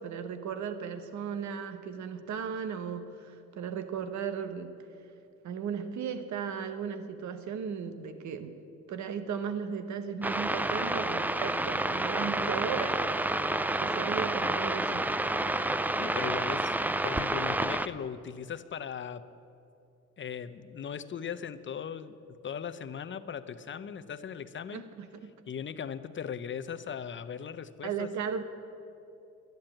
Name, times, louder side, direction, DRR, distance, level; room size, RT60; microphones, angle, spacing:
voice 1, 0.0-4.7 5.0-5.1 5.4-8.6 8.9-13.0 13.3-15.1 24.7-25.3 27.8-28.5, right 7 dB, 70° right, 10 dB, 1.1 m, -36 dB
sound 1, 10.2-17.9, right 1 dB, 5° right, 0.4 m, -29 dB
voice 2, 16.0-16.7 17.0-19.3 20.2-24.9 25.5-28.1, left 7 dB, 40° left, 13 dB, 0.7 m, -38 dB
11.5 x 10.5 x 8.8 m, 2.7 s
cardioid pair, 90°, 30 cm